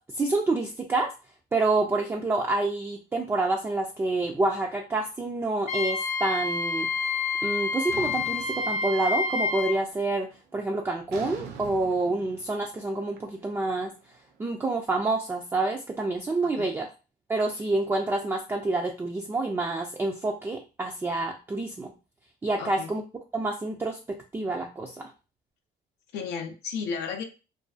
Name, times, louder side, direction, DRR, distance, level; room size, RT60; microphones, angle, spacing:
voice 1, 0.2-1.1 1.5-6.9 7.4-13.9 14.4-16.9 17.3-21.9 22.4-23.0 23.3-25.1, right 2 dB, 15° right, 0 dB, 0.3 m, -28 dB
Wind instrument woodwind instrument, 5.7-9.8, left 4 dB, 40° left, 0.6 m, -28 dB
sound 1, 7.9-9.4 9.8-10.2 11.1-14.2, right 6 dB, 90° right, 0.5 m, -44 dB
voice 2, 16.4-16.7 22.6-22.9 26.1-27.2, left 5 dB, 85° left, 4 dB, 0.5 m, -34 dB
2.5 x 2.3 x 2.3 m, 0.31 s
cardioid pair, 110°, 17 cm